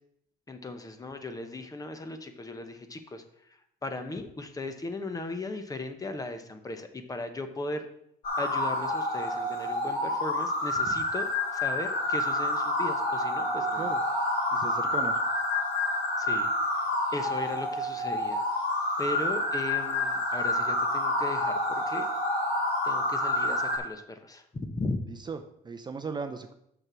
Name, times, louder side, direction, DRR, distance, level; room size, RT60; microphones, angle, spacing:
voice 1, 0.5-3.2 3.8-7.9 8.4-14.0 16.2-16.5 16.7-16.9 17.1-18.4 19.0-22.1 22.8-25.0, left 2 dB, 20° left, 8 dB, 1.0 m, -37 dB
sound 1, 8.2-23.8, left 1 dB, 60° left, 3.4 m, -28 dB
voice 2, 14.5-15.2 25.1-25.4 25.6-26.5, right 5 dB, 25° right, 6 dB, 0.6 m, -37 dB
6.4 x 6.0 x 6.1 m, 0.75 s
cardioid pair, 110°, 17 cm